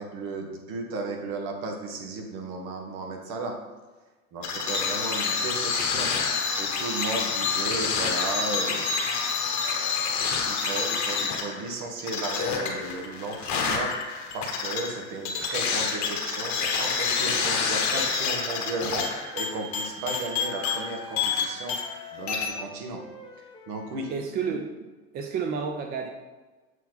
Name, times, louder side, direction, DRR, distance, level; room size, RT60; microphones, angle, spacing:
voice 1, 0.0-3.5 4.3-6.1 6.6-9.0 9.6-19.1 19.3-21.8 22.1-23.0 23.7-24.1, right 3 dB, 50° right, 3 dB, 1.6 m, -35 dB
sound 1, 4.4-22.0 22.3-22.5, left 5 dB, 40° left, 1.3 m, -28 dB
Wind instrument woodwind instrument, 15.3-19.6 20.3-24.2, left 3 dB, 10° left, 1.1 m, -46 dB
voice 2, 24.1-24.9 25.1-26.1, right 6 dB, 25° right, 4 dB, 0.4 m, -30 dB
7.2 x 4.4 x 4.1 m, 1.2 s
hypercardioid pair, 100°, 44 cm